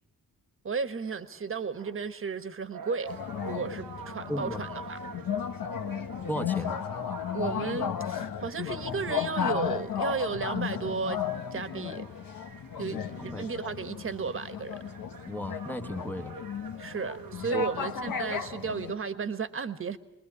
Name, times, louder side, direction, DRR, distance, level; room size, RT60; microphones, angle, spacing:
voice 1, 0.6-3.1 3.5-5.0 7.3-11.2 11.5-12.0 12.8-14.7 16.8-20.0, right 5 dB, 40° right, 1.4 m, -34 dB
sound 1, 1.0-19.2, right 6 dB, 85° right, 1.3 m, -48 dB
sound 2, 3.1-18.9, left 8 dB, 85° left, 1.5 m, -35 dB
voice 2, 4.3-4.6 6.3-6.8 12.9-13.5 15.3-16.4 17.5-17.7, left 1 dB, 5° left, 1.3 m, -35 dB
23.5 x 21.0 x 8.5 m
wide cardioid pair, 150°, 33 cm